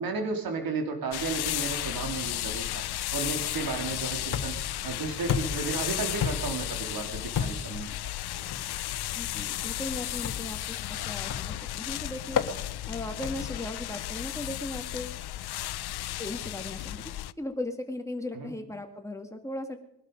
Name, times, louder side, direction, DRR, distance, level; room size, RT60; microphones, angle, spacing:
voice 1, 0.0-2.8 3.1-8.4 18.3-18.5, right 4 dB, 65° right, 4 dB, 3.2 m, -34 dB
sound 1, 1.1-17.3, left 15 dB, 85° left, 0.6 m, -34 dB
sound 2, 4.3-4.7 5.3-5.7 6.2-6.6 7.3-7.8 8.5-8.7 10.2-10.6 11.3-11.6 12.4-12.6 13.2-13.6, left 7 dB, 55° left, 1.6 m, -31 dB
voice 2, 9.1-12.4 12.9-15.2 16.2-17.0 17.4-19.8, left 1 dB, 10° left, 4 dB, 2.0 m, -37 dB
21.0 x 12.0 x 5.2 m, 0.82 s
cardioid pair, 110°, 38 cm